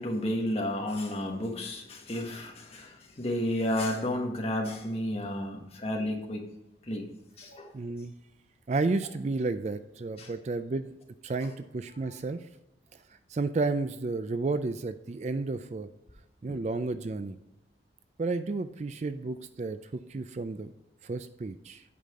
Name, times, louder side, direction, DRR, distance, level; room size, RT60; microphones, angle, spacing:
voice 1, 0.0-6.5 6.9-7.1 7.4-7.7 10.2-10.3 16.4-16.6, left 1 dB, 35° left, 2 dB, 1.3 m, -32 dB
voice 2, 7.7-8.1 8.7-11.0 11.2-12.5 13.3-15.9 16.4-17.4 18.2-19.8 20.1-20.7 21.0-21.8, right 3 dB, 40° right, 11 dB, 0.4 m, -32 dB
8.5 x 5.8 x 3.6 m, 0.91 s
head